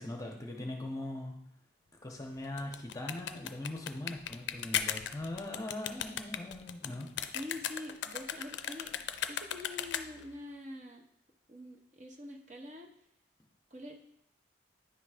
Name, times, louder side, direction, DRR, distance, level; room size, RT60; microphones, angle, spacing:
voice 1, 0.0-1.4 2.0-7.1, left 1 dB, 20° left, 1 dB, 0.8 m, -40 dB
sound 1, 2.4-10.3, left 9 dB, 70° left, 0.4 m, -37 dB
voice 2, 7.3-8.9 9.3-11.0 11.5-12.9 13.7-14.0, left 1 dB, 40° right, 2 dB, 0.8 m, -45 dB
9.6 x 3.5 x 4.9 m, 0.72 s
head